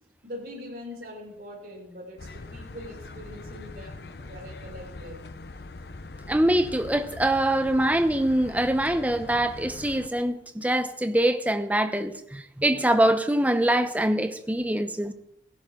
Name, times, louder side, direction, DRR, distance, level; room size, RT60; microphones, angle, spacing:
voice 1, 0.2-5.2, left 1 dB, 55° right, 6.8 m, -42 dB
sound 1, 2.2-10.1, left 3 dB, 60° left, 0.8 m, -42 dB
voice 2, 6.3-15.1, right 1 dB, 10° right, 0.8 m, -24 dB
17.0 x 15.5 x 3.8 m
head